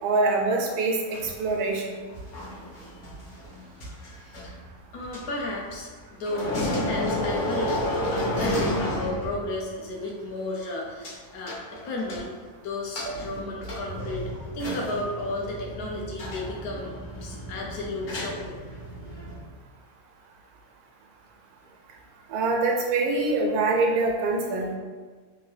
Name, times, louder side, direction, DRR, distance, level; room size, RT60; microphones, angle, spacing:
voice 1, 0.0-2.0 22.3-24.8, right 3 dB, 85° right, 0 dB, 1.1 m, -24 dB
sound 1, 1.1-6.0 6.2-9.6 9.9-10.0 11.0-11.1 11.5-12.5 12.9-19.4, left 1 dB, 60° left, 1.3 m, -32 dB
voice 2, 4.2-4.5 4.9-11.6 11.8-12.4 12.6-14.2 14.5-16.9 17.2-18.7, left 2 dB, 80° left, -2 dB, 1.2 m, -33 dB
3.5 x 2.6 x 3.2 m, 1.5 s
omnidirectional pair, 1.6 m